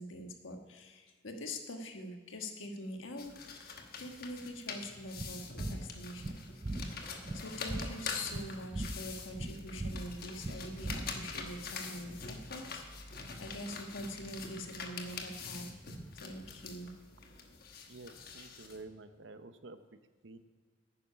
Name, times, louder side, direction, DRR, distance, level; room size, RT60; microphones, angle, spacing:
voice 1, 0.0-3.4 4.0-6.3 6.8-15.7 16.1-16.9, left 1 dB, 80° left, 4 dB, 1.4 m, -44 dB
sound 1, 3.2-18.8, left 4 dB, 50° left, 1.1 m, -45 dB
sound 2, 5.2-11.5, right 2 dB, 20° right, 0.4 m, -40 dB
voice 2, 17.9-19.8 20.2-20.4, right 3 dB, 65° right, 10 dB, 0.7 m, -50 dB
10.0 x 9.5 x 5.7 m, 1.5 s
head